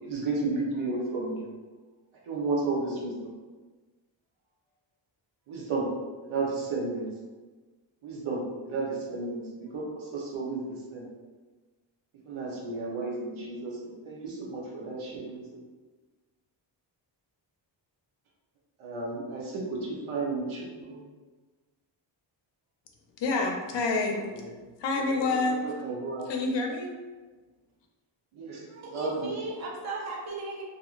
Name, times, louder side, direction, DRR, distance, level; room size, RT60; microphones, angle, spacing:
voice 1, 0.0-1.4 2.3-3.1 5.5-5.9 6.3-7.0 8.0-9.8 10.1-10.6 10.9-11.0 12.3-15.4 18.8-21.0 25.8-26.3 28.4-28.6 28.9-29.3, right 3 dB, 90° right, -3 dB, 0.9 m, -32 dB
voice 2, 23.2-24.5 24.8-25.6 26.2-26.9, left 3 dB, 65° left, 2 dB, 0.6 m, -28 dB
voice 3, 28.7-30.6, right 3 dB, 35° right, -2 dB, 0.6 m, -36 dB
2.9 x 2.5 x 2.4 m, 1.3 s
wide cardioid pair, 135°, 47 cm